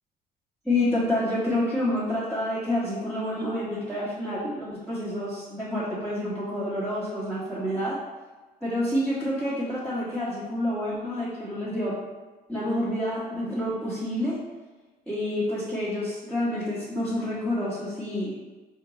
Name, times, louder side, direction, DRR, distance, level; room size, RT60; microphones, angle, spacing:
voice 1, 0.6-8.0 8.6-12.0 12.5-14.4 15.1-18.5, left 1 dB, ahead, -11 dB, 1.3 m, -28 dB
4.3 x 3.0 x 4.0 m, 1.2 s
cardioid pair, 110°, 17 cm